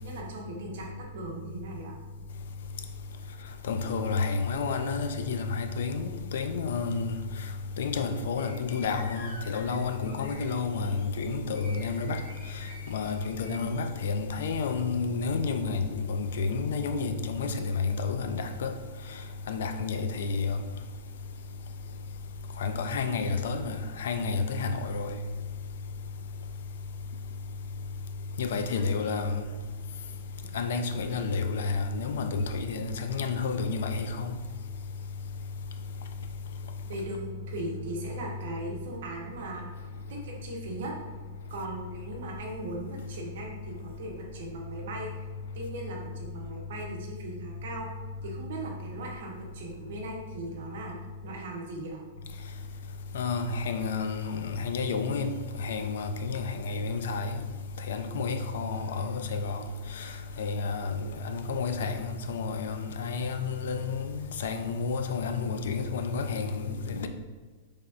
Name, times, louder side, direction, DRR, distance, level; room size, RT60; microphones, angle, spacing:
voice 1, 0.0-1.9 28.7-29.0 36.9-40.9 41.5-45.3 45.5-47.9 48.2-50.9 51.2-52.0, right 2 dB, 60° right, 0.8 m, -39 dB
voice 2, 3.7-7.2 7.8-12.2 12.9-18.7 19.5-20.6 22.6-23.7 24.0-25.2 28.4-29.4 30.5-34.3 53.1-55.3 55.6-57.4 57.9-59.6 60.4-61.0 61.2-67.1, left 4 dB, 70° left, 0.3 m, -30 dB
sound 1, 8.4-14.0, left 2 dB, 40° left, 1.0 m, -49 dB
3.8 x 3.3 x 2.4 m
supercardioid pair, 170°, 0 cm